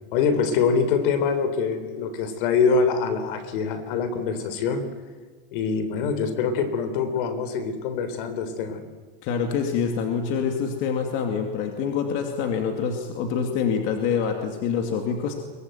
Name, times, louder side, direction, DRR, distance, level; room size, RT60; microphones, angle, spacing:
voice 1, 0.1-4.9 5.5-8.9, left 5 dB, 60° left, 11 dB, 3.6 m, -24 dB
voice 2, 9.2-15.3, left 6 dB, 40° left, 4 dB, 2.6 m, -26 dB
23.0 x 22.0 x 9.2 m, 1.4 s
supercardioid pair, 165°, 29 cm